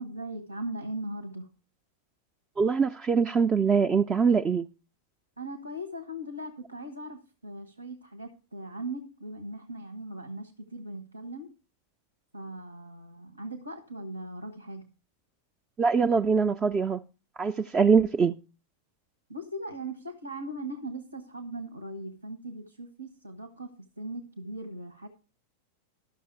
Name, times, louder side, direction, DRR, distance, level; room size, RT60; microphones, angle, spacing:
voice 1, 0.0-1.5 5.4-11.5 12.3-14.9 19.3-25.1, right 1 dB, 85° right, 1.3 m, -39 dB
voice 2, 2.6-4.6 15.8-17.0 17.4-18.3, right 5 dB, 20° right, 0.5 m, -23 dB
13.0 x 6.2 x 4.6 m
figure-of-eight pair, 90°, 0 cm